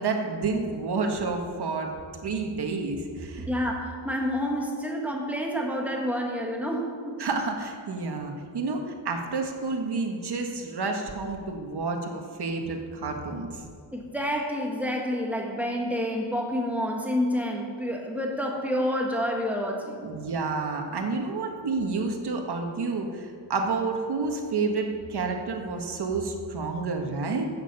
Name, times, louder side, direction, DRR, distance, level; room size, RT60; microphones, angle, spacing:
voice 1, 0.0-1.9 2.2-3.5 7.2-13.6 20.0-27.5, right 4 dB, 55° right, 3 dB, 1.6 m, -29 dB
voice 2, 3.5-7.2 13.9-20.1, equal, 5° right, 0 dB, 1.8 m, -28 dB
13.5 x 9.0 x 5.5 m, 2.1 s
wide cardioid pair, 140°, 46 cm